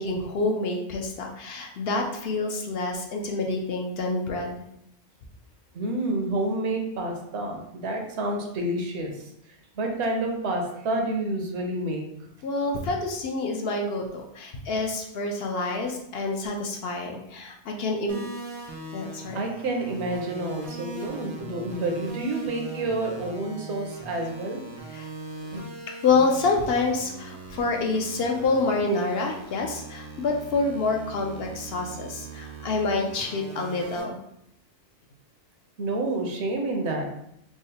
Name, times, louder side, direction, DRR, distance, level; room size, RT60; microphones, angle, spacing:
voice 1, 0.0-4.6 12.4-18.2 18.9-19.4 24.9-25.1 26.0-34.2, left 3 dB, 65° left, 1 dB, 0.7 m, -27 dB
voice 2, 5.7-9.2 9.8-12.0 19.3-24.6 25.5-25.6 35.8-37.1, right 2 dB, 70° right, 2 dB, 0.9 m, -29 dB
sound 1, 18.1-34.0, right 3 dB, 45° right, 0.4 m, -41 dB
3.6 x 2.1 x 4.0 m, 0.76 s
omnidirectional pair, 1.2 m